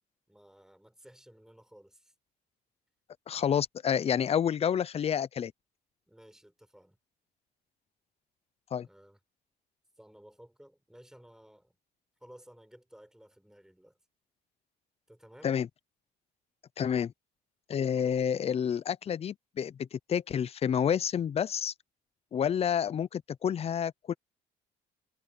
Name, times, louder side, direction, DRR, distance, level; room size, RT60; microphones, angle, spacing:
voice 1, 0.3-2.1 6.1-7.0 8.8-9.2 10.0-11.8 12.2-14.0 15.1-15.6, equal, 5° right, 7.0 m, -56 dB
voice 2, 3.3-5.5 8.7-8.9 15.4-15.7 16.8-17.1 17.7-21.7 22.3-24.1, left 8 dB, 35° left, 0.6 m, -29 dB
cardioid pair, 110°, 17 cm